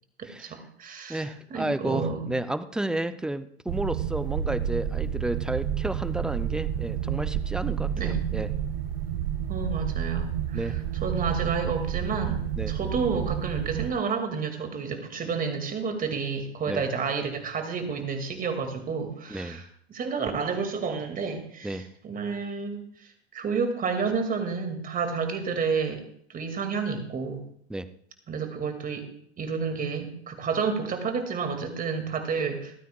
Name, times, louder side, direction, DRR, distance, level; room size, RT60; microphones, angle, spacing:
voice 1, 0.2-2.4 8.0-8.2 9.5-26.0 26.3-27.4 28.3-29.1 29.4-32.7, right 5 dB, 25° right, 6 dB, 2.2 m, -30 dB
voice 2, 1.1-8.5 10.5-10.8 12.6-12.7 16.7-16.8 19.3-19.6 21.6-21.8 27.7-27.9, right 1 dB, ahead, 13 dB, 0.4 m, -32 dB
sound 1, 3.7-13.9, right 10 dB, 60° right, 1.1 m, -30 dB
26.5 x 9.2 x 2.3 m, 0.65 s
hypercardioid pair, 95°, 33 cm